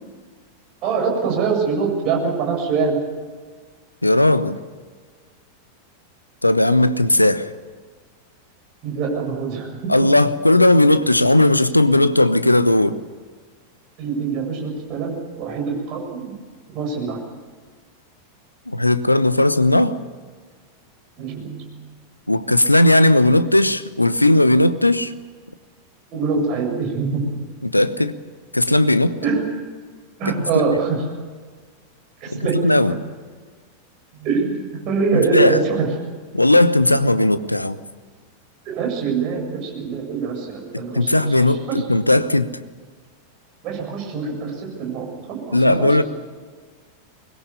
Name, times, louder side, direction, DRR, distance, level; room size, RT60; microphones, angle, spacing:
voice 1, 0.8-3.0 8.8-10.1 14.0-16.3 16.7-17.2 21.2-21.9 26.1-27.2 29.2-29.4 30.2-31.0 32.2-33.0 34.2-35.9 38.7-41.2 41.7-41.9 43.6-46.0, right 5 dB, 40° right, 7.6 m, -24 dB
voice 2, 4.0-4.6 6.4-7.5 9.9-13.0 18.7-20.0 22.3-25.1 27.6-28.2 28.5-29.2 32.3-32.9 35.1-35.6 36.3-37.8 40.7-42.6 45.5-46.0, left 1 dB, 85° left, 1.0 m, -16 dB
23.5 x 21.0 x 7.0 m
figure-of-eight pair, 90°, 0 cm